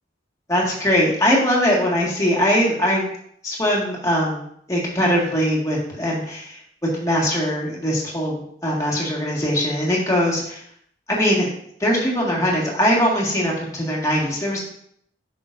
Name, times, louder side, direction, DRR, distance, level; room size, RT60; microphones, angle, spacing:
voice 1, 0.5-3.1 3.4-4.4 4.7-6.6 7.0-10.6 11.1-11.5 11.8-14.6, equal, 20° left, -4 dB, 1.8 m, -21 dB
8.8 x 6.0 x 2.6 m, 0.67 s
head